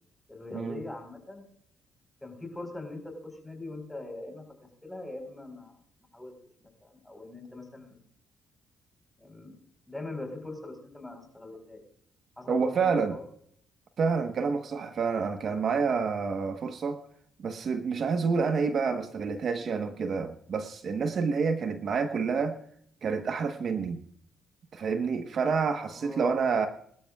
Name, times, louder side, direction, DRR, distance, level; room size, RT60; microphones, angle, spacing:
voice 1, 0.3-1.4 2.2-4.4 4.8-5.8 6.1-6.3 6.6-8.0 9.2-9.6 9.9-11.8 12.4-13.2 25.8-26.5, left 2 dB, 10° left, 4 dB, 4.3 m, -42 dB
voice 2, 12.5-13.2 14.0-17.0 17.4-22.6 23.0-24.0 24.7-26.7, right 5 dB, 55° right, 7 dB, 1.2 m, -28 dB
23.5 x 12.5 x 2.4 m, 0.65 s
cardioid pair, 90°, 0 cm